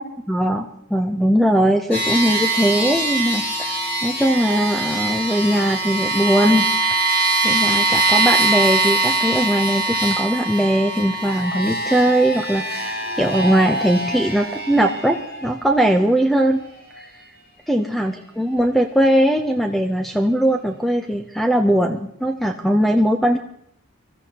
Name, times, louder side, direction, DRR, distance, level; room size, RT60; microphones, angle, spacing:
voice 1, 0.3-6.7 7.4-16.6 17.0-17.1 17.7-23.4, right 1 dB, ahead, 5 dB, 0.5 m, -20 dB
sound 1, 1.9-15.5, right 3 dB, 45° left, 7.7 m, -22 dB
24.5 x 14.5 x 2.9 m, 0.76 s
head